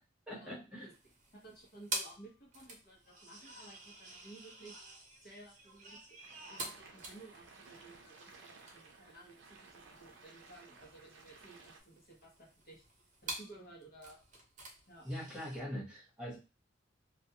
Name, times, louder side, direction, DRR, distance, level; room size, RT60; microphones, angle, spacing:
voice 1, 0.3-0.9 15.0-16.4, equal, 5° right, -6 dB, 1.1 m, -42 dB
sound 1, 0.9-15.6, right 2 dB, 40° right, 0.8 m, -48 dB
voice 2, 1.3-4.8 5.2-6.2 6.5-12.8 13.2-14.2 14.9-15.1, right 2 dB, 50° left, -2 dB, 0.8 m, -56 dB
sound 2, 6.2-11.8, right 4 dB, 75° right, 0.5 m, -57 dB
2.3 x 2.3 x 2.8 m, 0.30 s
head